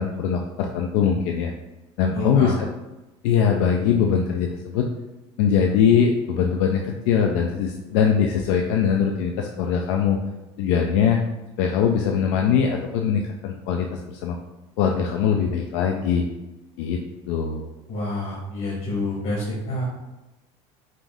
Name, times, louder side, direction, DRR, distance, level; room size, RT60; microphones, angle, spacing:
voice 1, 0.0-1.5 2.0-2.7 3.2-4.9 5.4-10.2 10.6-11.2 11.6-14.4 14.8-16.2 16.8-17.0 17.3-17.6, left 7 dB, 80° left, 2 dB, 0.5 m, -21 dB
voice 2, 2.1-2.5 17.9-19.8, left 1 dB, 65° left, -4 dB, 1.3 m, -28 dB
5.3 x 2.6 x 3.5 m, 1.0 s
supercardioid pair, 120°, 15 cm